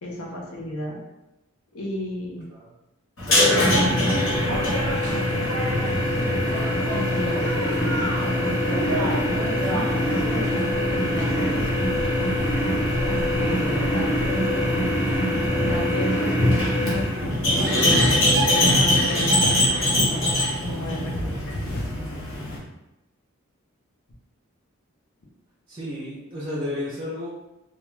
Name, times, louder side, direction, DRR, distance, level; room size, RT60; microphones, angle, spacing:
voice 1, 0.0-1.0 1.7-2.5 3.2-5.5 6.9-11.9 13.0-14.8 15.7-18.4 18.8-20.4 20.6-21.6, left 1 dB, 80° left, -2 dB, 0.6 m, -34 dB
sound 1, 3.2-22.6, left 1 dB, 60° left, 0.9 m, -23 dB
sound 2, 4.3-15.9, right 2 dB, 85° right, 0.4 m, -33 dB
sound 3, 16.8-22.6, left 1 dB, 40° left, 0.4 m, -35 dB
voice 2, 25.7-27.3, left 1 dB, 20° right, -9 dB, 0.4 m, -32 dB
2.2 x 2.2 x 3.0 m, 0.95 s
head